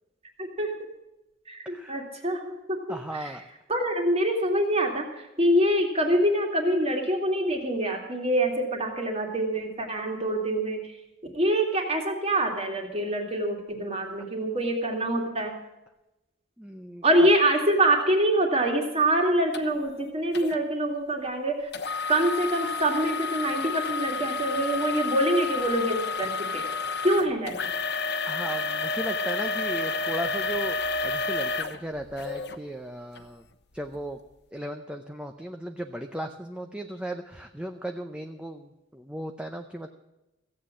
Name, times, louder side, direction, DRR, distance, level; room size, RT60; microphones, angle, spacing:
voice 1, 0.4-0.7 1.5-2.4 3.1-3.3 3.7-5.1 5.4-10.8 11.3-15.5 17.0-21.6 22.1-26.6 27.0-27.6, right 1 dB, 30° right, 2 dB, 2.4 m, -25 dB
voice 2, 1.7-2.0 2.9-3.4 16.6-17.3 28.3-33.4 33.7-34.2 34.5-39.9, right 1 dB, 5° right, 5 dB, 0.6 m, -36 dB
sound 1, 19.5-19.6 20.3-20.6 21.7-32.6 33.2-33.3 33.9-34.0, left 4 dB, 55° left, 1.0 m, -30 dB
15.5 x 8.4 x 7.4 m, 0.98 s
head